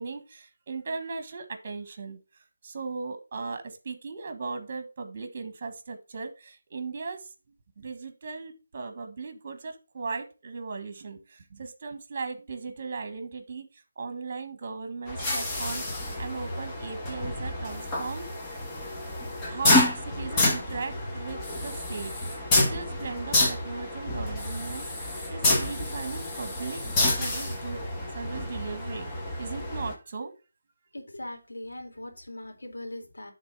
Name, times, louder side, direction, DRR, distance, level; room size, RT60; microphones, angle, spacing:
voice 1, 0.0-2.2 2.6-7.3 7.8-18.3 19.4-26.8 27.2-27.8 28.1-29.1 29.4-30.3, right 4 dB, 40° right, 8 dB, 1.4 m, -37 dB
sound 1, 15.1-29.9, left 1 dB, 15° left, 1.5 m, -29 dB
voice 2, 30.9-33.3, left 1 dB, 75° left, 3 dB, 2.4 m, -40 dB
10.5 x 3.8 x 4.7 m, 0.31 s
figure-of-eight pair, 160°, 0 cm